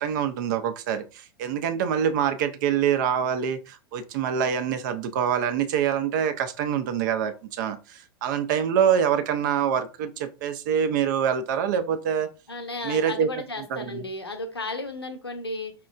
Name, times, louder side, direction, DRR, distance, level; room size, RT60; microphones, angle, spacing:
voice 1, 0.0-12.3 12.8-13.3 13.7-14.0, right 8 dB, 50° right, 0.5 m, -25 dB
voice 2, 12.5-15.7, left 2 dB, 85° left, 0.6 m, -34 dB
4.3 x 2.1 x 2.4 m
figure-of-eight pair, 90°, 13 cm